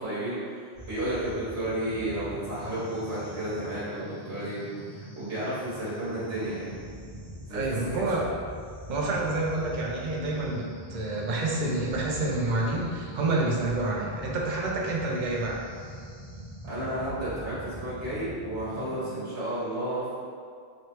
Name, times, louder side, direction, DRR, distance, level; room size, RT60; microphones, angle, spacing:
voice 1, 0.0-4.6 4.9-6.7 7.5-7.6 8.0-8.1 16.6-20.1, right 1 dB, 85° right, -11 dB, 1.3 m, -32 dB
sound 1, 0.7-19.3, equal, 25° left, 1.2 m, -43 dB
voice 2, 7.5-8.3 8.9-15.6, right 2 dB, 55° right, -2 dB, 0.6 m, -28 dB
3.2 x 3.1 x 2.9 m, 2.1 s
omnidirectional pair, 1.1 m